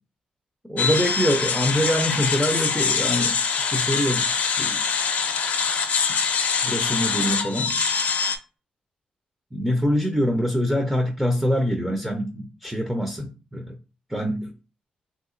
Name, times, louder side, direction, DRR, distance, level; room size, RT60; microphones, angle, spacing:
voice 1, 0.7-3.4 3.7-4.8 6.6-7.7 9.5-13.8 14.1-14.5, equal, 5° right, 0.5 m, -24 dB
sound 1, 0.8-8.4, left 5 dB, 65° left, 0.5 m, -24 dB
3.5 x 2.8 x 2.5 m
wide cardioid pair, 150°, 3 cm